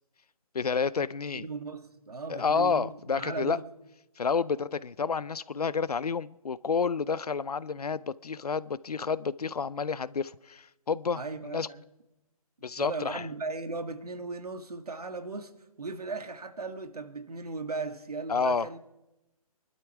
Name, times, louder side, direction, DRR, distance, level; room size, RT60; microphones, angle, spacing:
voice 1, 0.5-1.4 2.3-3.6 4.2-11.7 12.6-13.2 18.3-18.7, left 5 dB, 90° left, 0.7 m, -30 dB
voice 2, 1.3-3.7 11.2-11.8 12.8-18.8, right 3 dB, 85° right, 1.8 m, -37 dB
24.0 x 12.0 x 4.7 m
hypercardioid pair, 150°, 19 cm